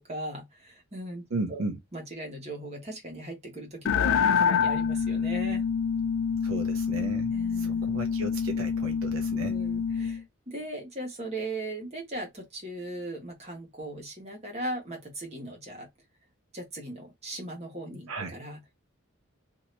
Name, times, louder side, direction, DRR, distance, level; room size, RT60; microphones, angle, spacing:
voice 1, 0.0-1.6 1.9-5.6 7.3-7.9 9.5-15.9 16.5-18.7, right 1 dB, 30° right, 1.2 m, -38 dB
voice 2, 1.3-1.8 6.4-9.6 18.1-18.4, right 2 dB, 75° right, 0.7 m, -35 dB
sound 1, 3.9-10.2, left 6 dB, 70° left, 0.3 m, -27 dB
2.7 x 2.7 x 3.2 m
head